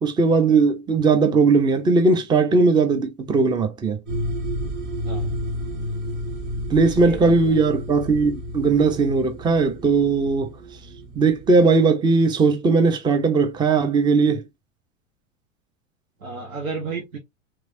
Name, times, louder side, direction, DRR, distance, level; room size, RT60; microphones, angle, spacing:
voice 1, 0.0-4.0 6.7-10.5 11.2-14.4, right 4 dB, 10° right, 0.5 m, -18 dB
sound 1, 4.1-11.7, equal, 45° right, 2.0 m, -31 dB
voice 2, 6.8-7.6 16.2-17.2, right 4 dB, 90° right, 1.1 m, -32 dB
3.4 x 3.1 x 2.6 m
hypercardioid pair, 95°, 40 cm